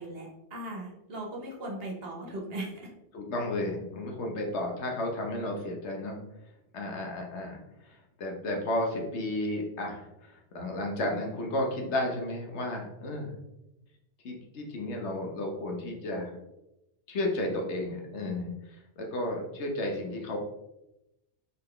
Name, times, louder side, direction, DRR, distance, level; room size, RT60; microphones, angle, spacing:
voice 1, 0.0-2.9, right 1 dB, 60° right, -1 dB, 1.2 m, -38 dB
voice 2, 3.1-6.2 6.7-13.3 14.2-16.4 17.1-20.4, left 1 dB, 75° left, 1 dB, 1.2 m, -33 dB
4.0 x 4.0 x 3.3 m, 0.92 s
omnidirectional pair, 1.2 m